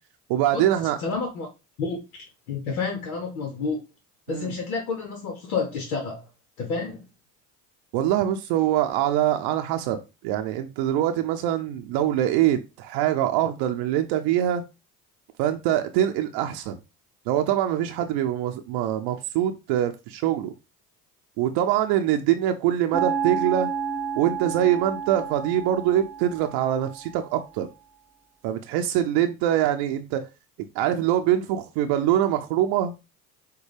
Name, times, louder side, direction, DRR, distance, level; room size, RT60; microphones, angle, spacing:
voice 1, 0.3-1.0 4.3-4.5 7.9-14.6 15.4-16.8 17.3-20.5 21.4-23.7 24.2-27.7 28.4-30.2 30.7-32.9, right 11 dB, 65° right, 0.6 m, -24 dB
voice 2, 1.0-1.5 1.8-3.8 4.3-6.3 6.6-7.0, left 4 dB, 85° left, 1.0 m, -30 dB
sound 1, 22.9-27.1, right 6 dB, 5° right, 0.8 m, -30 dB
6.5 x 2.3 x 3.3 m
hypercardioid pair, 65°, 43 cm